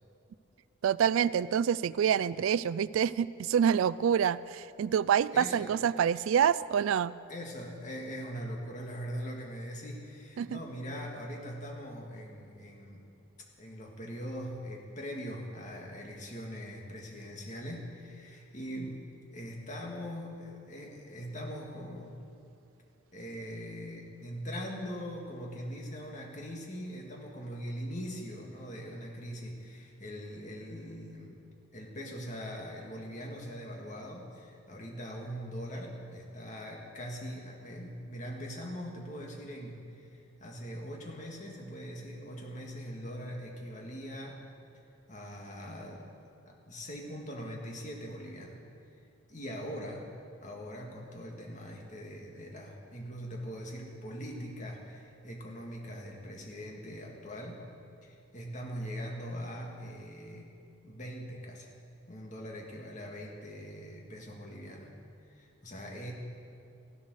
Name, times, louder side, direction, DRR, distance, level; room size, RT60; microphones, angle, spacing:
voice 1, 0.8-7.1 10.4-10.6, right 8 dB, 75° right, 18 dB, 0.3 m, -27 dB
voice 2, 5.3-5.7 7.3-13.1 13.6-19.1 19.3-22.2 23.1-31.4 31.7-44.4 45.1-46.1 46.5-48.6 49.3-50.1 50.4-57.6 58.0-60.5 60.8-61.7 62.1-64.9 65.3-66.1, equal, 35° left, -1 dB, 2.1 m, -41 dB
14.5 x 12.0 x 6.4 m, 2.5 s
head